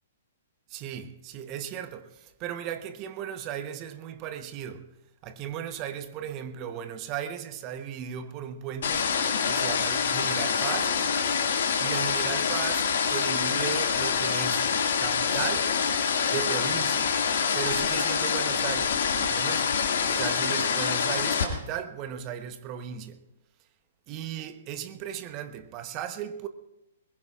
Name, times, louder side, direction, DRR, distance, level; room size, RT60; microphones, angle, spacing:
voice 1, 0.7-4.9 5.2-9.1 9.5-11.0 11.8-14.7 15.0-15.8 16.2-17.2 17.5-19.7 20.1-23.2 24.1-26.5, right 9 dB, 35° right, 1.0 m, -36 dB
sound 1, 8.8-21.4, left 6 dB, 60° left, 2.1 m, -26 dB
22.0 x 20.5 x 2.5 m
figure-of-eight pair, 120°, 0 cm